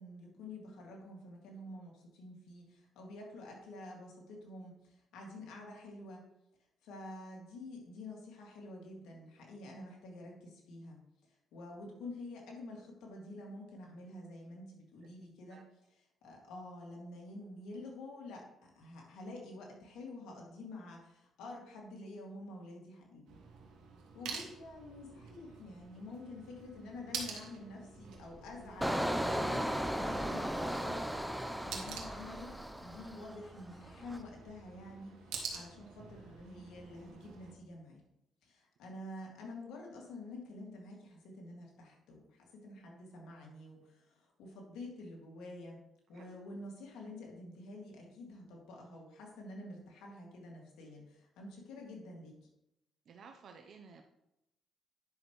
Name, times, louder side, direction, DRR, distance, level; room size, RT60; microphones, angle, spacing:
voice 1, 0.0-6.2 6.8-11.0 11.5-15.6 16.2-23.4 24.1-31.1 31.4-32.5 32.8-38.0 38.4-45.8 46.1-52.5, left 2 dB, 90° left, -1 dB, 2.2 m, -48 dB
sound 1, 23.3-37.5, right 5 dB, 90° right, 1.6 m, -48 dB
Engine, 28.8-33.5 33.8-34.2, equal, ahead, 0.6 m, -36 dB
voice 2, 53.1-54.0, right 5 dB, 60° right, 4 dB, 0.7 m, -54 dB
10.0 x 6.2 x 3.1 m, 0.87 s
cardioid pair, 90°, 0 cm